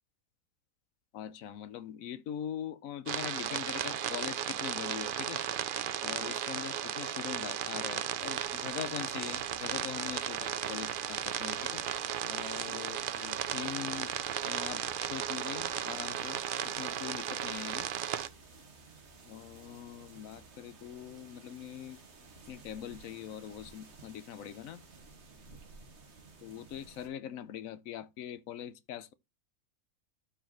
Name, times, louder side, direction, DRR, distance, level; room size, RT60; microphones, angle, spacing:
voice 1, 1.1-5.4 6.0-11.8 12.2-14.1 14.4-17.9 19.2-22.0 22.5-24.8 26.4-29.1, left 10 dB, 70° left, 1.1 m, -42 dB
sound 1, 3.1-18.3, right 9 dB, 85° right, 0.4 m, -35 dB
sound 2, 8.2-27.1, right 3 dB, 50° right, 1.7 m, -56 dB
12.5 x 4.5 x 3.1 m
omnidirectional pair, 1.6 m